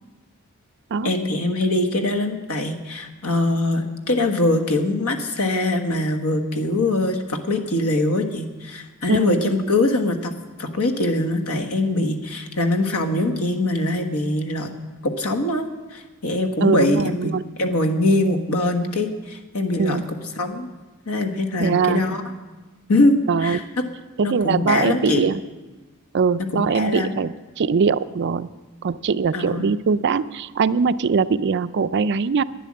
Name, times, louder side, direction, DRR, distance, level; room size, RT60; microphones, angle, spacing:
voice 1, 1.0-10.3 10.6-14.7 15.0-15.6 15.9-17.3 17.6-20.7 21.1-22.2 22.9-23.9 24.2-25.3 26.4-27.2 29.3-29.7, left 2 dB, 80° left, 5 dB, 1.4 m, -22 dB
voice 2, 9.1-9.5 16.6-17.4 19.8-20.0 21.6-22.1 23.3-23.6 24.2-25.4 26.1-28.5 28.8-32.4, right 5 dB, 50° right, 14 dB, 0.4 m, -21 dB
11.5 x 10.0 x 7.5 m, 1.2 s
head